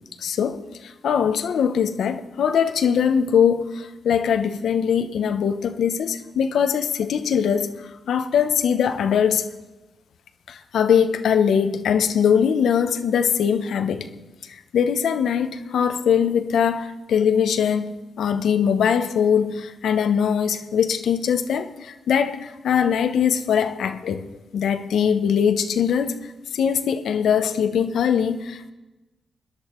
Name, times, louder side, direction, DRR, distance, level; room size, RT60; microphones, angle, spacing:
voice 1, 0.2-7.7 8.1-9.5 10.5-14.1 14.5-24.2 24.5-26.2 26.5-28.7, left 7 dB, 80° left, 0.8 m, -21 dB
21.0 x 10.5 x 4.5 m
supercardioid pair, 55°, 0 cm